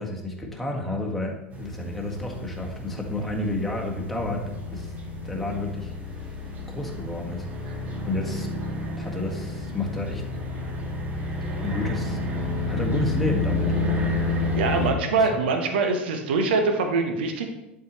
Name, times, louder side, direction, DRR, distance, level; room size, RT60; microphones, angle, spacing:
voice 1, 0.0-4.4 4.7-4.9 5.2-6.3 6.7-7.5 8.0-8.5 9.0-10.2 11.6-12.2 12.7-13.7 15.1-15.4, left 2 dB, 5° left, -1 dB, 1.6 m, -30 dB
sound 1, 1.5-14.9, left 2 dB, 25° right, 1.4 m, -30 dB
voice 2, 14.2-17.5, right 4 dB, 65° right, 5 dB, 1.0 m, -24 dB
11.0 x 4.7 x 3.1 m, 0.92 s
figure-of-eight pair, 80°, 6 cm